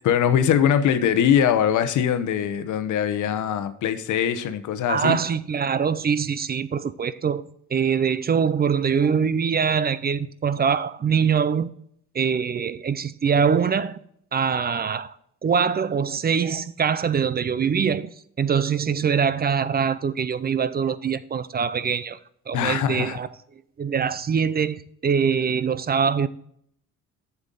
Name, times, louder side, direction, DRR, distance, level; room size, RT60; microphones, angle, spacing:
voice 1, 0.0-5.2 22.5-23.2, left 9 dB, 75° left, 0.9 m, -22 dB
voice 2, 4.9-7.4 7.7-11.7 12.1-14.0 14.3-15.1 15.4-18.1 18.4-22.2 22.5-23.3 23.8-26.3, right 6 dB, 30° right, 0.5 m, -23 dB
8.2 x 7.0 x 3.9 m
cardioid pair, 90°, 30 cm